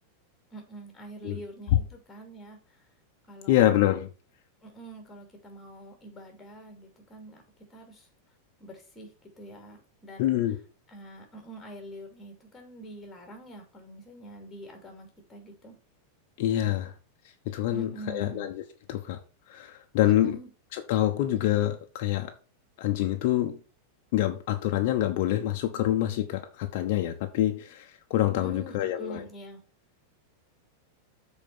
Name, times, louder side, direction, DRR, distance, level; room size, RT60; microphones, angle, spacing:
voice 1, 0.5-2.9 3.3-3.6 4.6-8.1 8.6-10.4 10.9-15.8 17.7-18.5 20.0-20.5 28.3-29.6, right 1 dB, 10° left, 2.7 m, -45 dB
voice 2, 3.5-4.1 10.2-10.6 16.4-16.9 17.5-18.6 18.9-19.2 19.5-20.4 20.7-22.3 22.8-23.6 24.1-29.2, left 13 dB, 50° left, 0.9 m, -26 dB
7.4 x 4.4 x 6.8 m
supercardioid pair, 165°, 0 cm